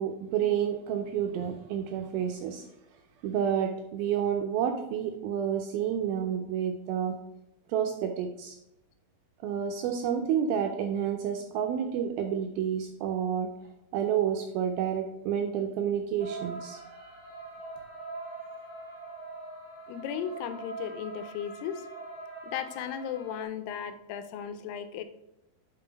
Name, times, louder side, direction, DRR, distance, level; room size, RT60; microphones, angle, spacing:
voice 1, 0.0-2.6 3.2-7.2 7.7-8.6 9.4-13.5 13.9-17.4, right 8 dB, 80° right, 4 dB, 2.2 m, -30 dB
sound 1, 16.2-23.4, right 3 dB, 25° left, 2.4 m, -43 dB
voice 2, 19.9-21.9 22.4-25.0, left 8 dB, 85° left, 10 dB, 2.6 m, -36 dB
5.7 x 5.5 x 4.9 m, 0.86 s
omnidirectional pair, 4.8 m